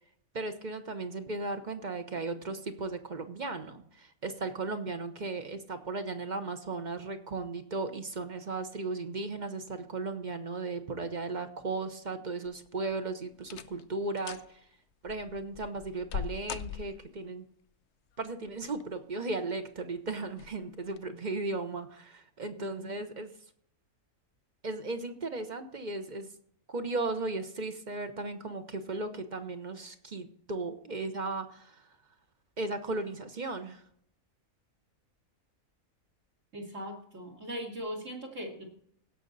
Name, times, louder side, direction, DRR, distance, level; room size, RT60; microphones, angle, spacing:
voice 1, 0.3-14.7 15.0-17.4 18.2-23.3 24.6-26.3 26.7-32.0 32.6-33.8, right 3 dB, 35° right, 8 dB, 1.0 m, -36 dB
sound 1, 12.5-12.9 13.4-13.9 14.2-14.5 15.1-17.3 18.5-19.0 19.5-19.6 20.3-20.5 20.9-21.0, left 9 dB, 65° left, 0.7 m, -41 dB
voice 2, 22.5-23.1 36.5-38.6, equal, 60° right, -1 dB, 3.1 m, -40 dB
16.5 x 6.3 x 4.0 m, 0.63 s
omnidirectional pair, 1.4 m